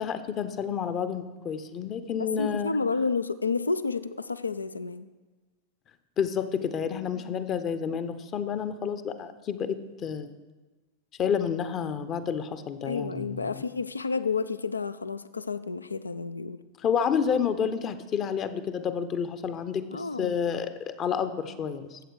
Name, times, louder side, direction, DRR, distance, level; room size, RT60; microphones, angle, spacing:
voice 1, 0.0-2.7 6.2-10.4 11.2-13.6 16.8-22.0, left 7 dB, 30° left, 11 dB, 0.7 m, -30 dB
voice 2, 2.2-5.1 7.1-7.3 12.8-16.6 19.9-20.3, left 4 dB, 80° left, 14 dB, 0.4 m, -30 dB
13.0 x 7.9 x 4.7 m, 1.2 s
figure-of-eight pair, 90°, 0 cm